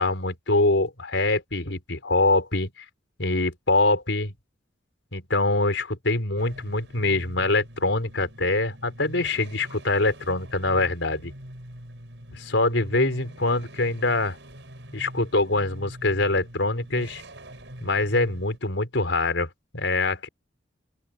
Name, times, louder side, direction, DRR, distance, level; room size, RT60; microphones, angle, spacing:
voice 1, 0.0-2.7 3.2-4.3 5.1-11.3 12.3-14.4 14.9-17.2 17.8-20.3, left 2 dB, 80° left, 4.2 m, -24 dB
sound 1, 6.4-18.6, equal, 70° right, 6.6 m, -44 dB
open air
head